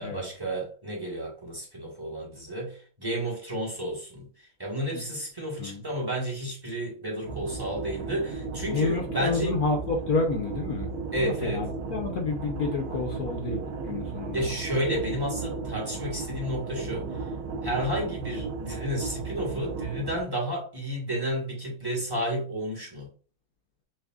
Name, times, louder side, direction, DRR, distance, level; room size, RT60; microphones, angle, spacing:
voice 1, 0.0-9.6 11.1-11.7 14.3-17.2 17.6-23.1, right 1 dB, 15° right, 0.9 m, -31 dB
sound 1, 7.2-20.2, right 4 dB, 85° right, 1.7 m, -35 dB
voice 2, 8.7-14.4, left 3 dB, 65° left, 0.9 m, -29 dB
6.2 x 2.5 x 2.3 m
omnidirectional pair, 2.2 m